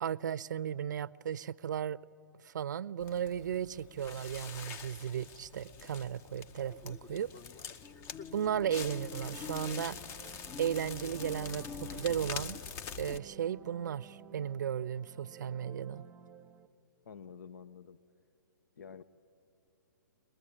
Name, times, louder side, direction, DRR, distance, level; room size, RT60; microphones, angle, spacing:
voice 1, 0.0-2.0 2.4-7.3 8.3-10.0 10.6-12.6 13.0-16.0, right 9 dB, 65° right, 0.5 m, -35 dB
Crackle, 3.0-13.2, left 6 dB, 25° left, 0.7 m, -44 dB
sound 1, 8.7-16.7, right 7 dB, 15° right, 0.8 m, -54 dB
voice 2, 17.0-18.0 18.8-19.0, left 7 dB, 70° left, 0.7 m, -49 dB
23.5 x 20.5 x 9.9 m
hypercardioid pair, 135°, 11 cm